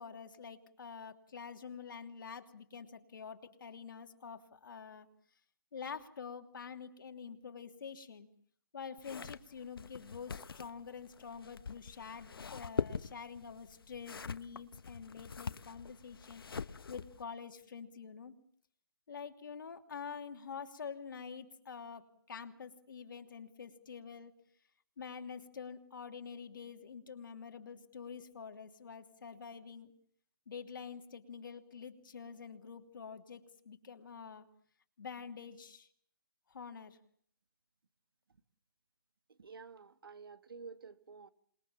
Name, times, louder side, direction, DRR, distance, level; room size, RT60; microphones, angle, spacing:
voice 1, 0.0-5.1 5.7-8.3 8.7-16.4 16.9-18.3 19.1-24.4 25.0-29.9 30.5-34.5 35.0-35.9 36.5-37.0, left 6 dB, 65° left, 2.8 m, -47 dB
sound 1, 9.0-17.2, left 5 dB, 85° left, 1.1 m, -43 dB
voice 2, 39.3-41.3, right 5 dB, 85° right, 1.9 m, -51 dB
27.0 x 21.5 x 7.3 m
hypercardioid pair, 170°, 12 cm